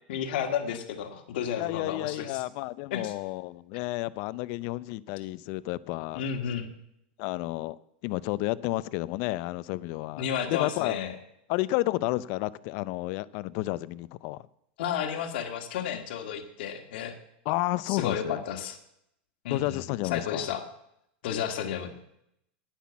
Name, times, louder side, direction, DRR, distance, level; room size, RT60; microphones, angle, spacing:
voice 1, 0.1-2.4 2.9-3.1 6.1-6.7 10.2-11.1 14.8-17.1 17.9-18.8 19.4-19.8 20.1-20.6 21.2-21.9, left 8 dB, 65° left, 5 dB, 2.0 m, -32 dB
voice 2, 1.6-6.3 7.2-7.8 8.0-11.0 11.5-14.4 17.5-18.4 19.5-20.5, left 18 dB, 45° left, 18 dB, 0.5 m, -31 dB
10.5 x 10.0 x 7.1 m, 0.77 s
supercardioid pair, 150°, 6 cm